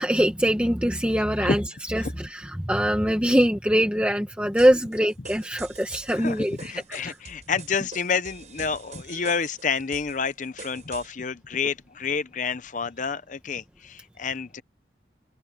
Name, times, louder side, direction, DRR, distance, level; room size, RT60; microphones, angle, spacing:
voice 1, 0.0-6.6 6.9-7.2 9.1-9.4, equal, 5° right, 1.4 m, -23 dB
sound 1, 4.6-11.1, right 5 dB, 40° right, 7.2 m, -46 dB
voice 2, 6.1-14.6, left 5 dB, 45° left, 0.7 m, -29 dB
head